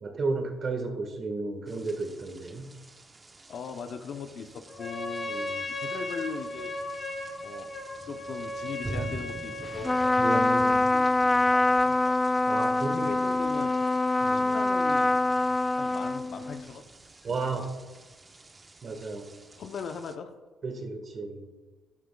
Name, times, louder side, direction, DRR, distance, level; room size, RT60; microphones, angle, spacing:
voice 1, 0.0-2.7 5.3-5.7 10.2-10.8 12.5-13.1 14.2-14.6 17.2-17.7 18.8-19.3 20.6-21.5, right 3 dB, 50° right, 5 dB, 1.6 m, -33 dB
sound 1, 1.7-20.2, right 3 dB, 30° right, 0.9 m, -46 dB
voice 2, 3.5-5.4 5.7-6.7 7.4-7.7 8.1-12.2 12.8-13.7 14.2-15.2 15.8-16.8 17.2-17.4 19.6-20.4, left 6 dB, 60° left, 8 dB, 0.8 m, -40 dB
Trumpet, 4.7-10.2, left 1 dB, 40° left, 3.6 m, -36 dB
Trumpet 2, 9.8-16.6, left 2 dB, 20° left, 0.3 m, -24 dB
13.5 x 11.5 x 2.4 m, 1.3 s
hypercardioid pair, 55°, 0 cm